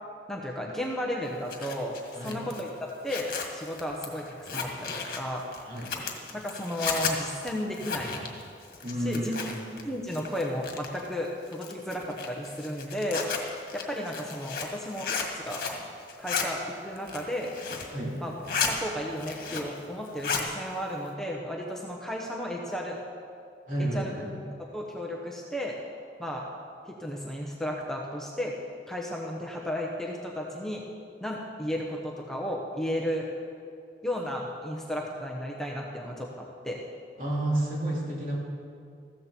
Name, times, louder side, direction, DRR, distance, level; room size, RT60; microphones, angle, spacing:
voice 1, 0.3-2.8 3.0-5.4 6.3-8.3 9.0-9.3 9.9-13.2 13.7-15.6 16.2-17.5 18.2-18.3 18.7-23.0 23.8-24.1 24.7-25.8 26.2-26.4 26.9-28.5 28.9-30.8 31.2-33.3 34.0-36.8, equal, 5° left, -2 dB, 1.0 m, -34 dB
Zipper (clothing), 1.2-9.8 10.1-11.1 11.5-15.8 16.1-16.5 16.9-17.9 18.3-18.7 19.1-19.8 20.1-20.5, left 5 dB, 55° left, 1.8 m, -34 dB
voice 2, 2.1-2.4 5.6-5.9 8.8-9.7 17.9-18.2 23.7-24.3 37.2-38.4, right 1 dB, 50° right, -5 dB, 3.8 m, -31 dB
15.0 x 14.0 x 4.5 m, 2.4 s
head